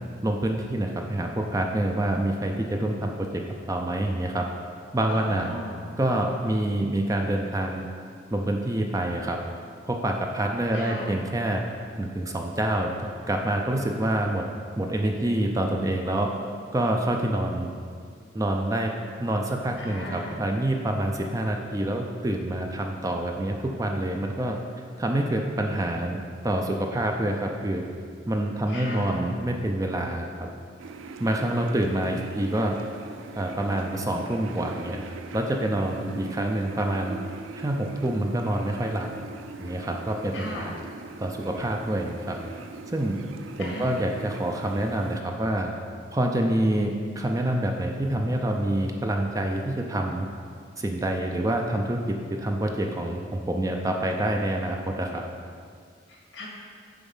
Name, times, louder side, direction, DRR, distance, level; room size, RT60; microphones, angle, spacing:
voice 1, 0.2-3.4 3.7-4.5 4.9-5.5 6.0-7.8 8.3-9.4 9.9-11.6 12.0-14.4 14.8-16.3 16.7-17.7 18.3-18.9 19.2-24.6 25.0-26.2 26.4-27.8 28.3-30.5 31.2-32.8 33.4-35.0 35.3-37.2 37.6-39.1 39.6-40.7 41.2-42.4 42.9-43.2 43.6-45.7 46.1-50.3 50.8-55.2, right 1 dB, 15° right, 2 dB, 0.4 m, -27 dB
voice 2, 5.1-5.9 10.7-11.1 19.8-20.4 28.7-29.2 40.3-40.7 43.6-44.0 56.1-56.5, left 1 dB, 75° left, -2 dB, 1.7 m, -37 dB
sound 1, 30.8-45.2, right 3 dB, 85° right, 0.4 m, -41 dB
7.1 x 4.8 x 5.5 m, 2.1 s
head